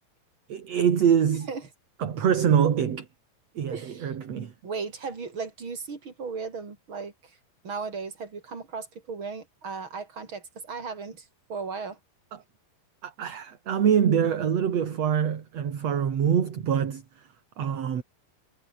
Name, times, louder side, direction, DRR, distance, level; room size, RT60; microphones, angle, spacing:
voice 1, 0.5-1.5 2.0-3.1 3.5-4.5 12.3-12.4 13.0-17.3 17.6-18.0, right 8 dB, 45° right, 2.9 m, -24 dB
voice 2, 3.7-4.1 4.6-7.1 7.6-12.0, right 5 dB, 30° right, 4.4 m, -36 dB
omnidirectional pair, 4.6 m